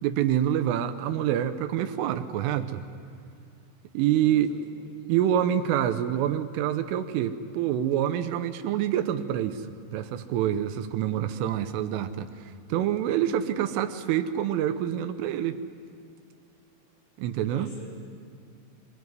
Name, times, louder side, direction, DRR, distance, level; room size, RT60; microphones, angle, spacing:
voice 1, 0.0-2.8 3.9-4.5 5.1-9.7 9.9-15.6 17.2-17.7, right 10 dB, 80° right, 10 dB, 3.4 m, -26 dB
voice 2, 4.1-4.9 17.5-17.9, left 3 dB, 70° left, -2 dB, 10.0 m, -46 dB
25.5 x 22.0 x 9.6 m, 2.4 s
omnidirectional pair, 5.9 m